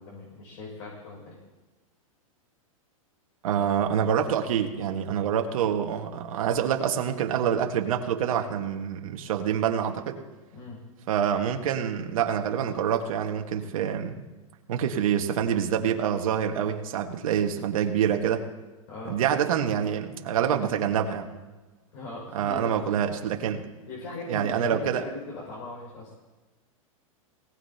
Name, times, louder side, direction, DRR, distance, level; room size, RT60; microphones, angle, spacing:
voice 1, 0.0-1.4 10.5-10.8 18.9-19.2 21.9-22.6 23.9-26.2, left 3 dB, 60° left, -4 dB, 6.0 m, -39 dB
voice 2, 3.4-10.2 11.1-14.1 14.7-18.5 19.0-21.2 22.3-23.6 24.3-25.0, right 8 dB, 75° right, 4 dB, 1.6 m, -26 dB
19.0 x 18.0 x 2.9 m, 1.2 s
hypercardioid pair, 130°, 18 cm